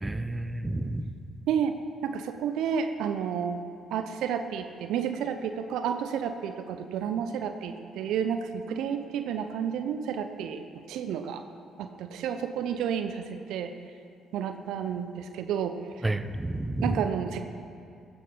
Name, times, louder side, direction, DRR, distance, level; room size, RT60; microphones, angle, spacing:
voice 1, 0.0-1.1 16.0-17.0, right 2 dB, 15° right, 10 dB, 1.0 m, -30 dB
voice 2, 1.5-1.8 2.0-3.6 3.9-10.6 10.9-11.4 11.8-13.7 14.3-15.8 16.8-17.4, right 8 dB, 65° right, 8 dB, 0.8 m, -31 dB
15.0 x 14.5 x 5.7 m, 2.5 s
hypercardioid pair, 45°, 0 cm